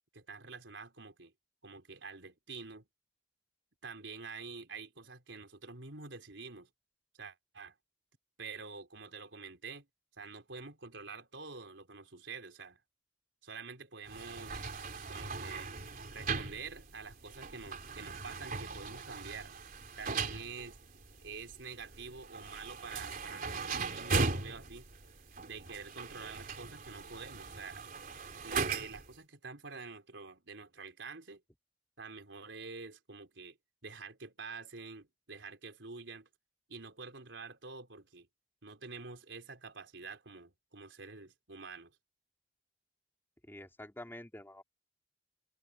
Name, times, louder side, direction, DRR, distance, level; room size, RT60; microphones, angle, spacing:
voice 1, 0.1-1.3 1.6-2.9 3.8-6.7 7.2-7.7 8.4-9.9 10.2-12.8 13.4-14.6 15.1-15.7 16.1-19.5 20.0-20.8 21.2-24.9 25.4-27.8 28.4-31.4 32.0-33.6 33.8-36.3 36.7-38.3 38.6-41.9, right 4 dB, 80° right, 3.8 m, -47 dB
sound 1, 14.1-29.1, right 4 dB, 50° right, 3.5 m, -39 dB
voice 2, 43.5-44.6, left 1 dB, 10° left, 4.4 m, -47 dB
head